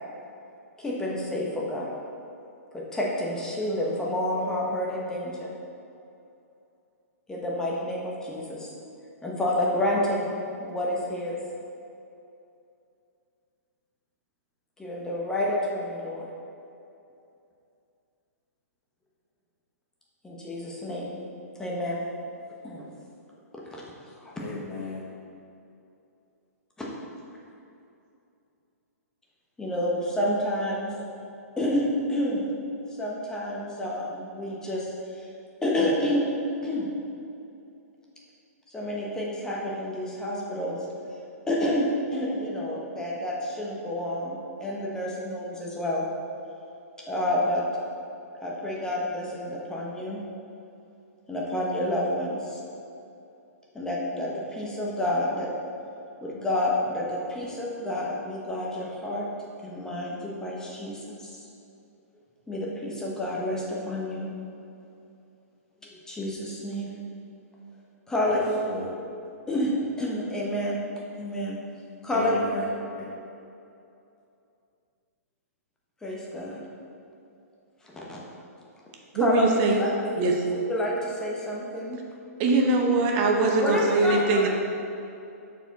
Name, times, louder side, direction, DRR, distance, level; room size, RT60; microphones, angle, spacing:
voice 1, 0.8-1.9 2.7-5.5 7.3-8.7 9.2-10.3 10.6-11.3 14.8-16.3 20.2-21.2 21.6-22.0 22.6-22.8 23.7-23.9 24.2-24.3 26.8-26.9 29.6-30.9 31.6-32.4 33.0-35.3 35.6-36.3 36.6-36.9 38.7-40.8 41.5-46.1 47.1-47.6 48.4-50.2 51.3-52.6 53.7-55.5 56.2-59.3 59.6-61.4 62.5-64.3 65.8-66.9 68.1-68.6 69.5-70.8 71.2-71.6 72.0-72.6 76.0-76.6 77.8-78.2 79.2-82.0 83.6-84.5, left 1 dB, 5° left, -4 dB, 1.0 m, -29 dB
voice 2, 24.3-25.1 68.3-68.9 72.1-72.7 72.9-73.1, left 4 dB, 35° left, -4 dB, 0.9 m, -36 dB
voice 3, 79.1-79.8 80.2-80.3 82.4-84.5, right 3 dB, 35° right, 1 dB, 0.9 m, -22 dB
6.9 x 4.6 x 4.1 m, 2.7 s
hypercardioid pair, 145°, 9 cm